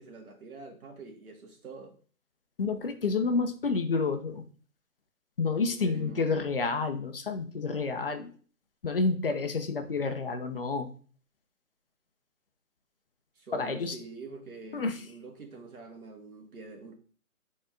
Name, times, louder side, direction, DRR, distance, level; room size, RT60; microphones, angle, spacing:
voice 1, 0.0-2.0 5.6-6.5 13.4-16.9, right 4 dB, 75° right, 2.2 m, -46 dB
voice 2, 2.6-4.4 5.4-8.3 8.8-10.9 13.5-14.0 14.7-15.0, left 4 dB, 40° left, 0.8 m, -29 dB
7.6 x 4.3 x 3.8 m
hypercardioid pair, 170°, 43 cm